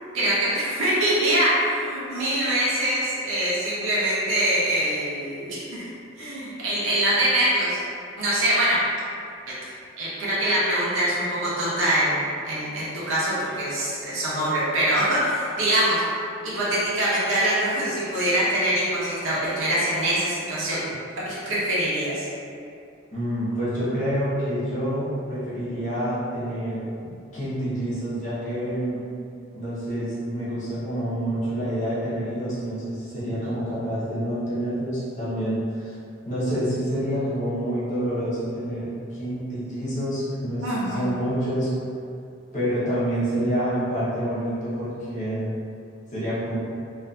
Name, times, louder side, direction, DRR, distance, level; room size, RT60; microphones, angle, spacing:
voice 1, 0.1-5.9 6.2-7.8 8.2-8.8 10.0-16.0 16.4-20.8 21.3-22.3 40.6-41.1, right 1 dB, 75° right, -9 dB, 0.7 m, -24 dB
voice 2, 23.1-26.8 27.3-29.0 29.5-35.9 36.2-41.7 42.5-45.6 46.1-46.6, equal, 35° left, -11 dB, 0.8 m, -27 dB
2.5 x 2.5 x 2.3 m, 2.5 s
head